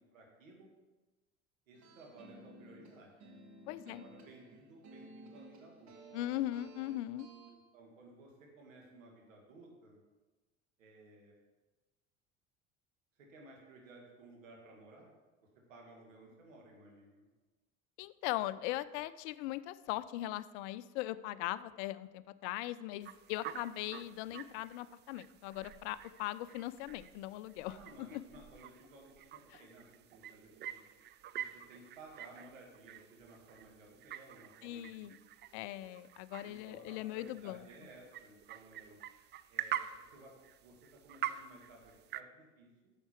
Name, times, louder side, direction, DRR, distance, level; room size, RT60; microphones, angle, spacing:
voice 1, 0.1-0.7 1.7-3.1 3.8-5.9 7.5-10.0 10.8-11.3 13.2-15.1 15.7-17.3 27.7-30.8 31.3-35.1 36.4-39.0 39.5-40.3 40.6-42.9, right 2 dB, 80° right, -1 dB, 2.1 m, -57 dB
sound 1, 1.7-7.5, right 3 dB, 45° right, 1.7 m, -55 dB
voice 2, 3.7-4.0 6.1-7.3 18.0-28.2 34.6-35.2 35.5-37.7, left 15 dB, 60° left, 16 dB, 0.5 m, -40 dB
sound 2, 23.0-42.2, right 11 dB, 30° right, 0.4 m, -47 dB
8.7 x 6.6 x 4.5 m, 1.2 s
hypercardioid pair, 65°, 38 cm